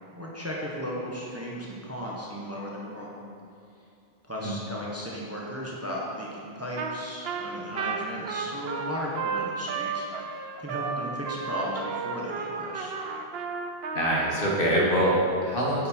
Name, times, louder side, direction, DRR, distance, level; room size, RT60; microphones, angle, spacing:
voice 1, 0.1-3.2 4.2-12.9, equal, 15° right, -4 dB, 1.1 m, -35 dB
Trumpet, 6.8-7.0 7.2-14.6, right 5 dB, 75° right, 0.9 m, -33 dB
voice 2, 13.9-15.9, equal, 60° left, -4 dB, 1.8 m, -24 dB
9.3 x 6.2 x 4.5 m, 2.5 s
omnidirectional pair, 1.1 m